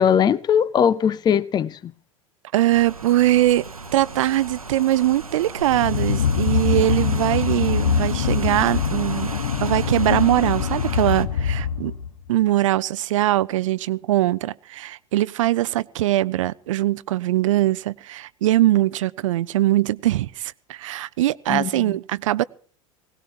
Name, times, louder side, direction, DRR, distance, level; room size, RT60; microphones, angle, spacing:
voice 1, 0.0-1.9 21.5-21.9, left 8 dB, 25° left, 0.6 m, -20 dB
voice 2, 2.5-9.3 9.6-11.9 12.3-22.4, right 15 dB, 65° right, 0.6 m, -21 dB
Rain, 2.7-11.2, right 3 dB, 90° right, 0.9 m, -36 dB
sound 1, 5.7-12.2, left 7 dB, 70° left, 0.9 m, -23 dB
20.5 x 18.5 x 3.0 m
figure-of-eight pair, 80°, 18 cm